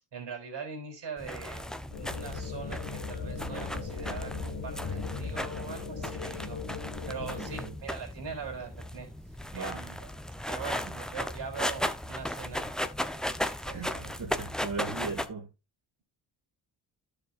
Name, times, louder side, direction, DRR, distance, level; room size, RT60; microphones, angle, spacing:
voice 1, 0.0-9.1 9.5-10.1 10.5-12.8 13.2-14.2, right 5 dB, 65° right, 3.6 m, -42 dB
sound 1, 1.2-15.3, left 1 dB, ahead, 0.6 m, -36 dB
sound 2, 1.9-7.7, left 5 dB, 65° left, 1.8 m, -38 dB
voice 2, 7.4-7.7 9.5-9.8 13.7-15.5, right 4 dB, 45° right, 2.1 m, -38 dB
11.5 x 6.9 x 2.5 m
cardioid pair, 70°, 47 cm